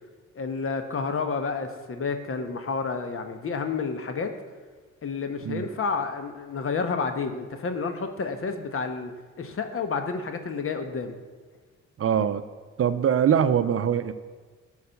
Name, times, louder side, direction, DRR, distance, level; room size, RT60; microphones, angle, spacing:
voice 1, 0.3-4.3 5.0-9.1 9.4-11.2, left 4 dB, 45° left, 7 dB, 1.3 m, -30 dB
voice 2, 12.0-12.4 12.8-14.1, right 8 dB, 50° right, 11 dB, 0.6 m, -23 dB
14.0 x 4.8 x 7.0 m, 1.4 s
cardioid pair, 90°, 30 cm